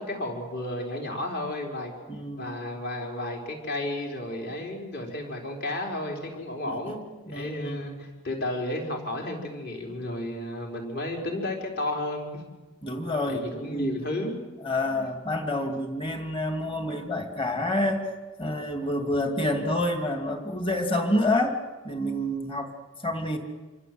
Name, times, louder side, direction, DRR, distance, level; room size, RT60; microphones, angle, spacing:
voice 1, 0.0-1.9 2.4-7.0 7.3-12.4 13.3-14.4 14.8-14.9, left 1 dB, 45° left, 1 dB, 4.9 m, -32 dB
voice 2, 2.1-2.5 6.6-6.8 7.3-7.8 12.8-13.9 14.6-18.1 18.4-21.6 21.8-22.7 23.0-23.4, left 1 dB, 25° left, 4 dB, 2.6 m, -28 dB
27.5 x 25.0 x 8.0 m, 1.2 s
head